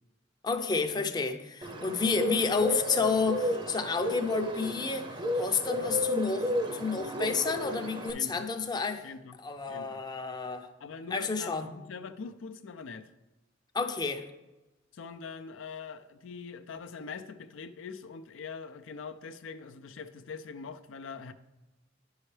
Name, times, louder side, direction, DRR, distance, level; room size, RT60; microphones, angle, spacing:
voice 1, 0.4-5.1 5.3-9.1 9.4-10.7 11.1-11.7 13.7-14.2, left 4 dB, 20° left, 5 dB, 0.5 m, -30 dB
Bird, 1.6-8.1, equal, 25° right, 0.6 m, -33 dB
voice 2, 8.1-8.5 9.0-9.4 9.7-10.0 10.8-13.1 14.9-21.3, left 5 dB, 85° left, 8 dB, 0.5 m, -43 dB
9.8 x 5.5 x 3.3 m, 1.0 s
head